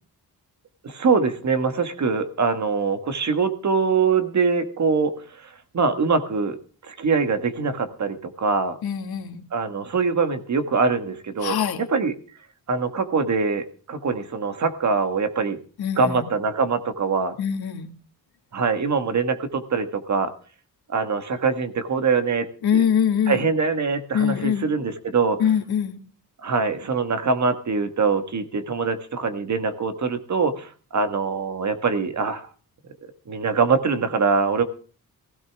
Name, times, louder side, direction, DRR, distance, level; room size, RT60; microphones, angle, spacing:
voice 1, 0.8-5.5 5.7-6.6 6.8-8.8 9.5-11.5 11.9-12.1 12.7-15.6 16.0-17.3 18.5-20.3 20.9-22.5 22.7-22.8 23.3-25.4 26.4-32.5 33.3-34.6, right 5 dB, 50° right, 9 dB, 1.6 m, -23 dB
voice 2, 8.8-9.4 11.4-11.8 15.8-16.3 17.4-17.9 22.6-23.5 24.1-24.7 25.4-26.0, left 8 dB, 80° left, 5 dB, 2.0 m, -23 dB
16.0 x 16.0 x 3.5 m, 0.39 s
wide cardioid pair, 140°, 37 cm